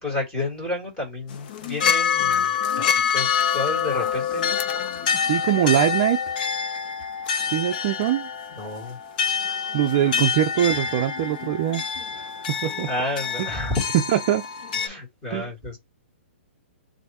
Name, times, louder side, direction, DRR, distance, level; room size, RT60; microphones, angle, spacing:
voice 1, 0.0-2.9 3.1-4.6 8.5-9.0 12.9-13.8 14.8-15.8, left 2 dB, 10° left, 2.3 m, -30 dB
sound 1, 1.3-14.9, left 7 dB, 45° left, 0.6 m, -26 dB
voice 2, 5.2-6.2 7.5-8.3 9.7-11.8 12.1-12.9 13.4-13.5 14.1-14.4 15.3-15.5, right 12 dB, 35° right, 0.5 m, -23 dB
3.3 x 2.6 x 4.2 m
hypercardioid pair, 160°, 6 cm